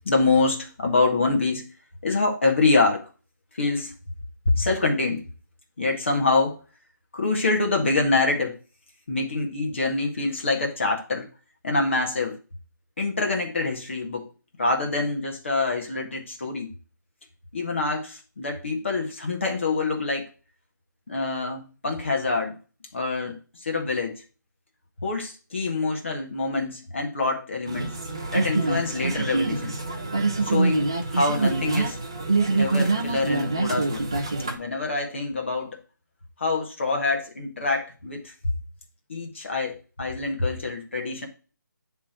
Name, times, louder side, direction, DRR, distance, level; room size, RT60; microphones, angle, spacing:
voice 1, 0.1-1.7 2.0-3.1 3.6-3.9 4.5-5.2 5.8-6.6 7.1-8.6 9.1-11.3 11.6-12.4 13.0-14.3 14.6-16.7 17.5-20.3 21.1-22.6 22.9-24.2 25.0-28.0 28.3-29.8 30.4-32.0 32.6-34.1 34.5-35.8 36.4-38.5 39.1-41.3, left 3 dB, 35° left, 1.8 m, -25 dB
sound 1, 27.7-34.5, right 3 dB, 15° right, 0.4 m, -25 dB
10.0 x 3.6 x 4.4 m
hypercardioid pair, 180°, 11 cm